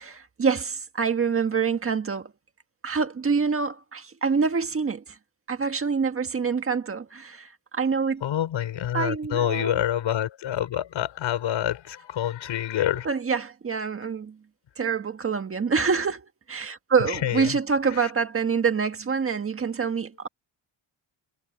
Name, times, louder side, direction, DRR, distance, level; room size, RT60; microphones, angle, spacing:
voice 1, 0.1-2.3 2.8-5.2 5.5-8.2 8.9-9.8 13.0-14.4 14.8-20.3, right 5 dB, 30° right, 1.6 m, -26 dB
voice 2, 8.2-13.1 17.0-17.6 17.8-18.1, left 11 dB, 70° left, 5.3 m, -27 dB
wide cardioid pair, 175°, 46 cm